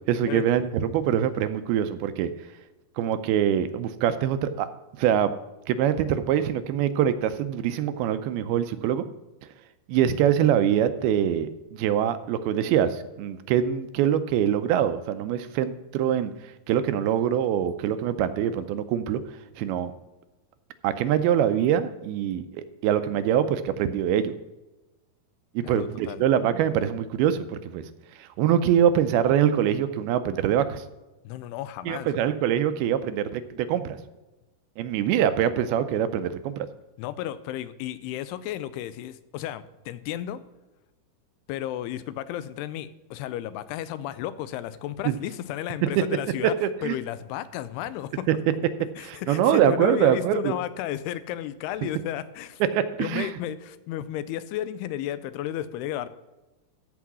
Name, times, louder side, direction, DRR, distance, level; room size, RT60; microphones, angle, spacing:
voice 1, 0.1-2.3 3.0-4.7 5.0-5.3 5.7-9.0 9.9-16.3 16.7-19.2 19.6-19.9 20.8-24.4 25.6-27.8 28.2-30.8 31.9-34.0 34.8-36.7 45.1-45.2 46.0-46.1 46.6-47.0 48.3-48.4 49.0-50.5 52.7-53.3, right 9 dB, 80° right, 11 dB, 2.4 m, -24 dB
voice 2, 25.6-26.2 31.2-32.2 37.0-40.4 41.5-46.5 46.8-48.3 49.0-52.6 53.0-56.1, left 12 dB, 90° left, 14 dB, 2.6 m, -33 dB
14.0 x 4.8 x 6.0 m, 1.1 s
omnidirectional pair, 4.6 m